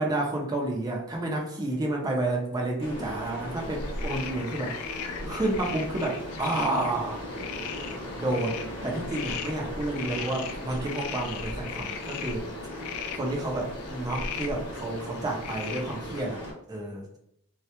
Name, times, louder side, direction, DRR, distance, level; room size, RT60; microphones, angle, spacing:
voice 1, 0.0-4.7 5.2-7.2 8.2-12.5 13.1-16.4 16.7-17.1, right 2 dB, 20° right, -1 dB, 0.4 m, -30 dB
sound 1, 2.8-16.5, equal, 25° left, 0.8 m, -38 dB
sound 2, 3.6-16.3, left 8 dB, 85° left, 0.3 m, -39 dB
2.1 x 2.1 x 2.8 m, 0.74 s
head